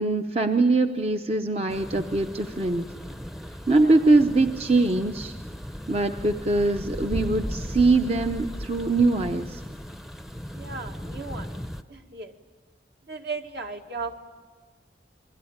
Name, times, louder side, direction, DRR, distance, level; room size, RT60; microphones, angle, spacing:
voice 1, 0.0-2.9 3.7-5.4 5.9-9.6, right 2 dB, 35° right, 6 dB, 0.8 m, -22 dB
sound 1, 1.7-11.8, equal, ahead, 0.7 m, -37 dB
voice 2, 3.8-4.1 10.5-11.6 11.9-12.3 13.1-14.2, right 4 dB, 60° right, 4 dB, 1.9 m, -36 dB
28.0 x 22.5 x 8.8 m, 1.4 s
head